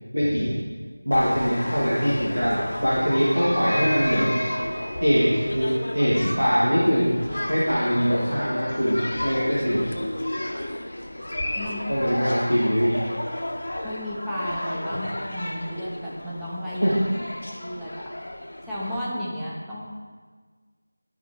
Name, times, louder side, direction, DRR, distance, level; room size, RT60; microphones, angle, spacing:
voice 1, 0.1-0.5 1.1-4.4 5.0-5.7 5.9-7.1 7.5-9.0 9.2-9.8 11.9-13.0 14.9-15.0 16.8-17.0, equal, 85° right, -8 dB, 2.3 m, -22 dB
sound 1, 1.1-19.0, left 1 dB, 55° left, 0.9 m, -33 dB
sound 2, 3.3-12.3 12.7-12.9 13.2-13.5, equal, 25° right, 2.7 m, -38 dB
voice 2, 11.4-11.9 13.8-16.9 17.5-18.1 18.7-19.8, equal, ahead, -11 dB, 0.9 m, -33 dB
12.5 x 4.7 x 4.0 m, 1.5 s
figure-of-eight pair, 170°, 0 cm